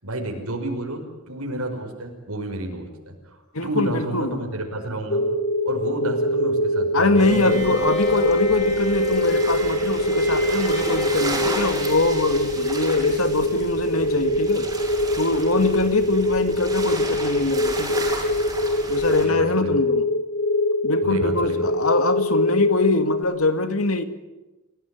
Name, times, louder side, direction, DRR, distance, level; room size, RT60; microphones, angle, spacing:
voice 1, 0.0-5.3 5.6-7.9 19.2-19.8 21.0-21.7, right 1 dB, 85° right, 2 dB, 5.7 m, -31 dB
voice 2, 3.5-4.4 6.9-14.7 15.2-18.1 18.9-20.1 20.8-24.0, left 2 dB, 75° left, 9 dB, 2.2 m, -23 dB
sound 1, 5.1-23.2, left 1 dB, 60° left, 2.4 m, -23 dB
Bowed string instrument, 7.1-13.2, left 3 dB, 30° left, 6.5 m, -31 dB
sound 2, 7.2-19.3, right 2 dB, 15° right, 7.1 m, -34 dB
29.0 x 18.0 x 9.8 m, 1.1 s
head